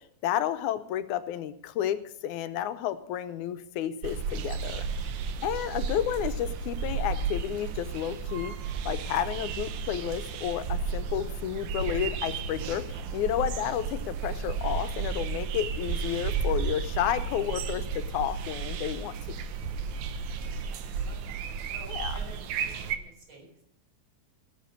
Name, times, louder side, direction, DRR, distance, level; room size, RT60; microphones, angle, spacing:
voice 1, 0.2-4.9 5.4-8.5 8.9-19.1 21.9-22.2, left 11 dB, 85° left, 11 dB, 2.2 m, -31 dB
sound 1, 4.0-23.0, right 5 dB, 75° right, 2.1 m, -33 dB
voice 2, 20.4-23.6, right 1 dB, 40° right, 0 dB, 5.0 m, -52 dB
18.0 x 7.5 x 6.4 m, 0.74 s
omnidirectional pair, 3.4 m